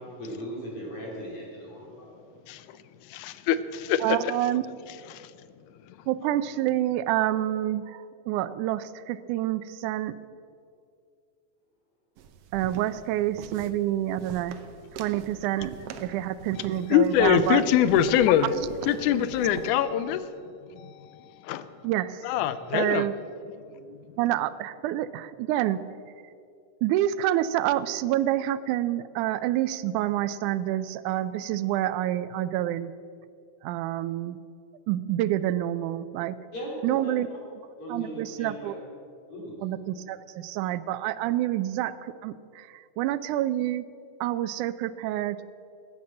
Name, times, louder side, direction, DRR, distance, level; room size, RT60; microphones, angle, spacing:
voice 1, 0.2-2.1 36.5-37.1 37.8-38.7 39.3-39.6, equal, 45° left, -3 dB, 4.3 m, -37 dB
voice 2, 2.5-4.3 5.1-5.3 5.8-6.1 16.9-18.5 18.9-21.7 22.2-23.1 23.7-24.2, left 10 dB, 90° left, 14 dB, 2.1 m, -25 dB
voice 3, 4.0-4.6 6.1-10.2 12.5-14.6 14.9-17.6 21.8-22.2 22.7-23.1 24.2-25.8 26.8-32.9 33.6-34.4 34.9-36.4 36.8-37.3 37.9-38.8 39.6-43.9 44.2-45.4, right 13 dB, 85° right, 15 dB, 2.1 m, -28 dB
sound 1, 12.2-19.7, right 7 dB, 70° right, 1.5 m, -43 dB
14.5 x 8.8 x 7.5 m, 2.4 s
omnidirectional pair, 3.5 m